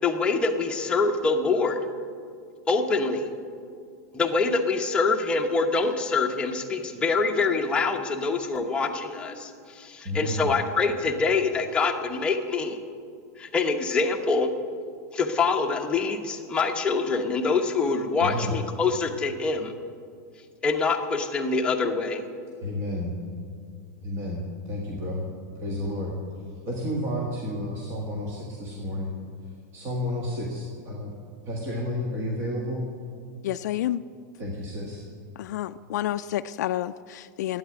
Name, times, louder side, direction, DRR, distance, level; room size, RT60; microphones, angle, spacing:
voice 1, 0.0-1.8 2.7-3.3 4.1-12.8 13.4-14.5 15.1-19.7 20.6-22.2, left 4 dB, 10° left, 2 dB, 0.9 m, -25 dB
voice 2, 10.0-10.5 18.2-18.5 22.6-23.1 24.0-25.2 25.6-26.1 26.7-29.1 29.7-31.1 31.4-32.8 34.4-35.0, left 1 dB, 30° right, -2 dB, 1.7 m, -31 dB
voice 3, 33.4-34.0 35.4-37.6, left 13 dB, 75° left, 11 dB, 0.4 m, -29 dB
12.0 x 9.2 x 9.6 m, 2.3 s
supercardioid pair, 165°, 9 cm